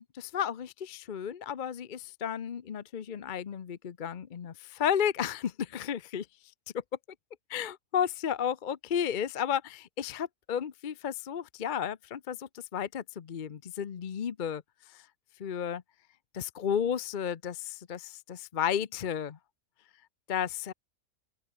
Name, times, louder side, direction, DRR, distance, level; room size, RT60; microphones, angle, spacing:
voice 1, 0.0-6.3 7.5-14.6 15.4-15.8 16.3-19.4 20.3-20.7, left 8 dB, 45° left, 0.7 m, -33 dB
open air
omnidirectional pair, 1.5 m